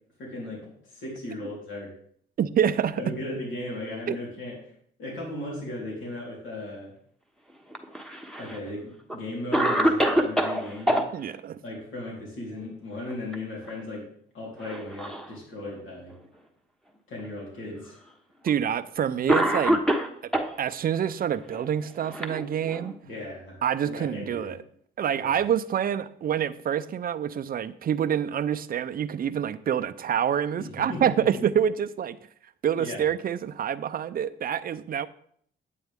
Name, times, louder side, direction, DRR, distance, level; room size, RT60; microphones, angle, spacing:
voice 1, 0.2-0.6 0.9-1.9 3.0-4.6 5.0-6.9 8.4-11.0 11.6-14.1 14.3-16.1 17.1-18.0 23.0-23.6 23.8-24.6 25.2-25.4 30.6-31.2 32.8-33.0, left 1 dB, 75° left, 3.7 m, -36 dB
voice 2, 2.4-3.1 4.1-4.2 11.1-11.6 18.4-19.8 20.2-20.3 20.6-22.9 23.6-24.6 25.0-32.2 32.6-35.1, right 9 dB, 50° right, 0.5 m, -27 dB
Cough, 7.7-8.6 9.1-9.2 9.5-11.0 12.9-13.3 13.7-13.8 14.6-15.3 16.1-16.2 17.2-17.3 18.5-18.6 19.3-20.5 21.5-22.9, equal, 5° left, 1.1 m, -25 dB
9.0 x 8.5 x 3.6 m
cardioid pair, 90°, 20 cm